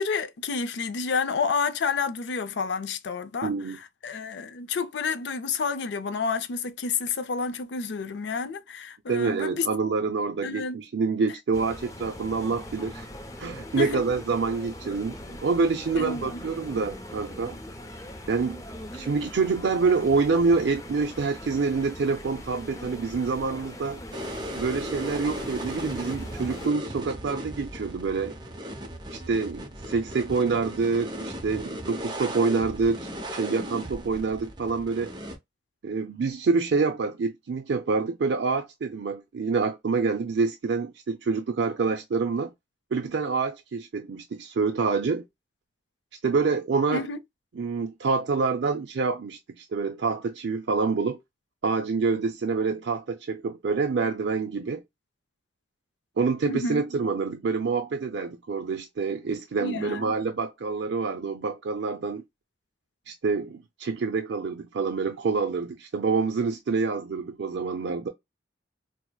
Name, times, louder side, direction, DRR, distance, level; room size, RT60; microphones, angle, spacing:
voice 1, 0.0-3.5 4.0-9.7 10.4-10.8 13.8-14.0 16.0-16.4 46.9-47.2 56.5-56.8 59.6-60.1, left 5 dB, 75° left, 0.5 m, -29 dB
voice 2, 3.4-3.8 9.1-13.1 13.4-15.2 15.4-17.5 18.3-18.6 18.9-24.0 24.5-28.4 29.1-35.1 35.8-42.5 42.9-45.2 46.2-47.1 47.5-51.2 51.6-54.8 56.2-62.2 63.1-68.1, right 4 dB, 75° right, 0.5 m, -27 dB
sound 1, 11.5-26.7, left 1 dB, 20° left, 0.5 m, -41 dB
sound 2, 24.1-35.4, equal, 25° right, 0.7 m, -37 dB
4.5 x 2.0 x 2.2 m
head